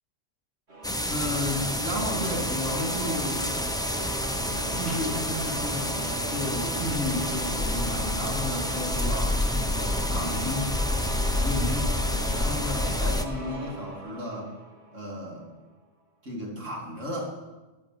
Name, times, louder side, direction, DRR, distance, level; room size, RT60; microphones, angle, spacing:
sound 1, 0.7-15.3, right 2 dB, 60° right, 2.6 m, -38 dB
sound 2, 0.8-13.2, left 1 dB, 5° left, 0.5 m, -28 dB
voice 1, 0.8-3.5 4.7-6.0 6.3-9.4 9.7-10.8 11.4-11.9 12.3-14.5 14.9-15.5 16.2-17.3, left 1 dB, 80° right, -2 dB, 3.3 m, -33 dB
sound 3, 4.7-7.7 8.1-8.2 8.4-8.5 9.3-9.4, right 1 dB, 25° right, 3.5 m, -49 dB
11.0 x 10.5 x 7.7 m, 1.2 s
omnidirectional pair, 1.3 m